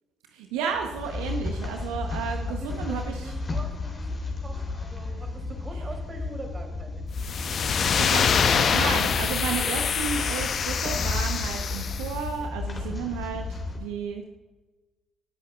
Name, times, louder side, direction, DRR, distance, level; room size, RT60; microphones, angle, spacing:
voice 1, 0.3-3.3 7.6-14.4, right 6 dB, 70° right, 4 dB, 0.7 m, -33 dB
sound 1, 0.7-13.8, left 3 dB, 35° left, 3.0 m, -33 dB
voice 2, 2.4-7.0, right 1 dB, 25° right, 3 dB, 2.7 m, -42 dB
sound 2, 7.2-12.1, left 6 dB, 50° left, 0.6 m, -25 dB
18.5 x 8.3 x 2.3 m, 1.2 s
hypercardioid pair, 50°, 0 cm